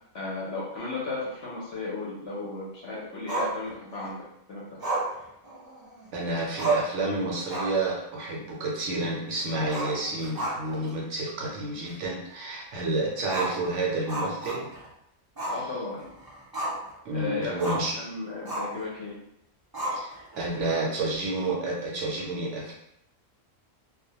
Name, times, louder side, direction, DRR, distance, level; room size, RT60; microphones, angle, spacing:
voice 1, 0.1-4.6 15.5-16.0 17.1-17.5 17.9-19.2, left 3 dB, 60° left, -5 dB, 0.8 m, -35 dB
Growling, 3.3-4.1 4.8-6.0 6.3-6.4 6.6-7.0 7.4-7.9 8.2-8.3 9.6-10.9 11.2-11.3 11.8-11.9 13.2-14.9 15.4-15.6 16.0-16.9 17.6-17.9 18.4-18.8 19.7-20.4, right 2 dB, 35° right, 0.3 m, -31 dB
voice 2, 6.1-14.7 17.1-18.0 19.9-22.7, right 2 dB, 65° right, -3 dB, 0.8 m, -30 dB
2.3 x 2.1 x 2.7 m, 0.78 s
omnidirectional pair, 1.4 m